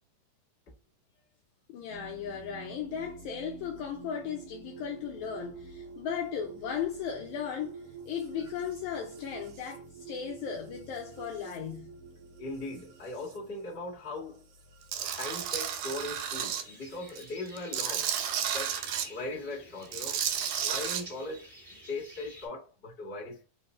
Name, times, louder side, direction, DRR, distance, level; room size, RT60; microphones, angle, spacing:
voice 1, 1.7-11.9, left 8 dB, 80° left, 1.7 m, -36 dB
sound 1, 1.9-17.0 18.1-18.8, right 5 dB, 75° right, 1.8 m, -49 dB
voice 2, 12.4-14.5 14.9-18.7 19.1-20.2 20.6-21.5 21.9-23.4, left 2 dB, 40° left, 0.8 m, -39 dB
Tools, 14.9-16.6 17.1-19.1 19.8-21.0, right 9 dB, 90° right, 2.3 m, -32 dB
sound 2, 15.0-22.5, right 1 dB, 25° right, 1.1 m, -49 dB
5.0 x 2.3 x 3.0 m
omnidirectional pair, 3.8 m